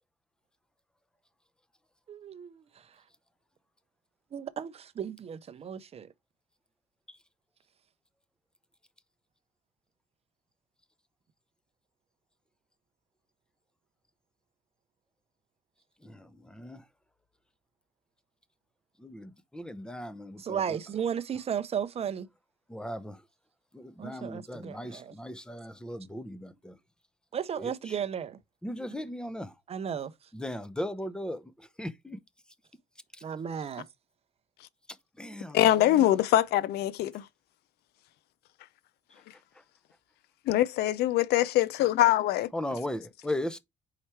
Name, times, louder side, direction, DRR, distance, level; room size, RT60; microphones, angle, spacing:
voice 1, 2.1-2.6 4.3-6.1 20.4-22.3 24.0-25.1 27.3-28.4 29.7-30.1 33.2-33.8, right 8 dB, 35° right, 0.6 m, -34 dB
voice 2, 19.0-20.8 22.7-23.2 23.7-26.7 28.6-29.5 30.3-31.4 31.8-32.2 35.2-35.6 42.5-43.6, left 1 dB, 5° left, 0.7 m, -37 dB
voice 3, 35.5-37.2 40.5-42.5, left 13 dB, 75° left, 0.5 m, -23 dB
4.8 x 4.4 x 4.4 m
cardioid pair, 110°, 17 cm